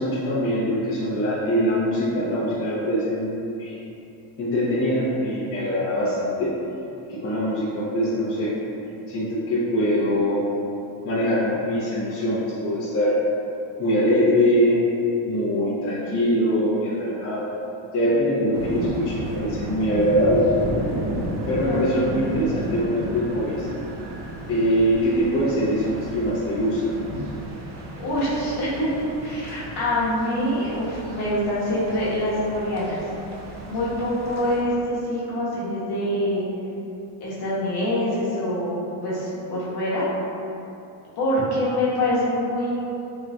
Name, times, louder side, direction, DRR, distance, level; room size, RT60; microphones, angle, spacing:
voice 1, 0.0-3.7 4.4-6.5 7.1-8.5 9.1-10.4 11.0-13.2 13.8-14.8 15.2-17.5 17.9-20.4 21.5-23.7 24.5-26.9, equal, 30° left, -10 dB, 0.7 m, -23 dB
sound 1, 18.5-34.6, right 2 dB, 35° right, 0.4 m, -34 dB
voice 2, 22.1-22.4 27.1-27.2 28.0-28.9 29.2-33.1 33.6-36.4 37.2-40.1 41.2-42.9, left 1 dB, 50° left, -8 dB, 1.2 m, -25 dB
3.7 x 3.1 x 2.2 m, 2.8 s
cardioid pair, 125°, 50 cm